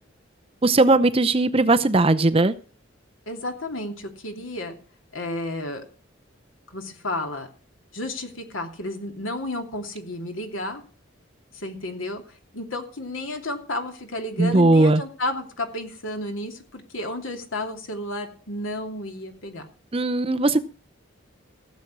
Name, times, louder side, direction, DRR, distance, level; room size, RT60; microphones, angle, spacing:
voice 1, 0.6-2.5 14.4-15.0 19.9-20.6, right 2 dB, 30° right, 0.6 m, -18 dB
voice 2, 3.3-4.8 5.1-5.8 6.7-7.5 7.9-10.8 11.5-12.2 12.5-19.6, left 1 dB, 80° left, 2.8 m, -32 dB
16.0 x 7.5 x 6.0 m
head